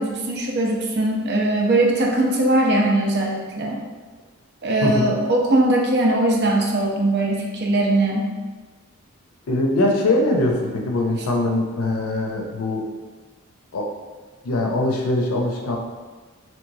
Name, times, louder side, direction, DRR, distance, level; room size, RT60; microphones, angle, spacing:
voice 1, 0.0-3.8 4.6-8.3, right 1 dB, 50° right, 0 dB, 0.5 m, -20 dB
voice 2, 4.8-5.2 9.5-12.9 13.7-13.9 14.4-15.8, left 2 dB, 80° left, 1 dB, 0.5 m, -22 dB
3.1 x 3.0 x 2.6 m, 1.3 s
head